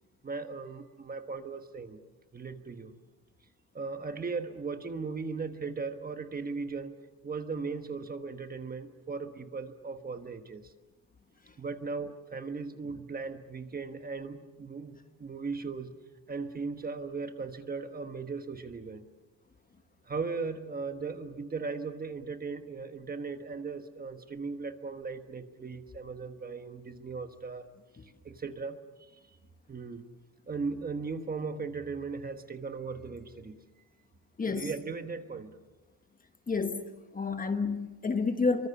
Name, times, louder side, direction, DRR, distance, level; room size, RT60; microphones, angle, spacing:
voice 1, 0.2-2.0 2.3-3.0 3.7-7.0 7.2-10.7 11.6-15.9 16.3-19.1 20.1-27.7 28.0-28.8 29.7-30.1 30.5-33.6 34.5-35.6, right 4 dB, 20° right, 1.3 m, -37 dB
voice 2, 34.4-34.7 36.5-38.7, left 4 dB, 20° left, 1.2 m, -30 dB
27.5 x 24.0 x 7.1 m
cardioid pair, 160°, 42 cm